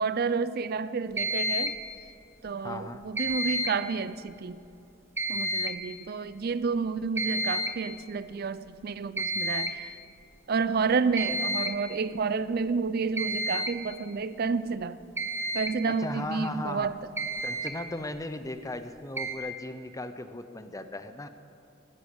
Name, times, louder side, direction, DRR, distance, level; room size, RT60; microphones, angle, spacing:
voice 1, 0.0-1.7 2.4-4.6 5.3-10.0 10.5-15.0 15.5-17.0, right 5 dB, 55° right, 15 dB, 0.5 m, -30 dB
sound 1, 1.2-1.9 3.2-3.9 5.2-5.9 7.2-7.9 9.2-9.8 11.2-11.9 13.2-13.9 15.2-15.8 16.8-16.9 17.2-17.7 19.2-19.4, right 1 dB, 15° right, 1.1 m, -30 dB
voice 2, 2.6-3.0 15.9-16.9 17.4-21.3, left 2 dB, 20° left, 10 dB, 0.7 m, -37 dB
15.0 x 12.0 x 7.8 m, 2.6 s
head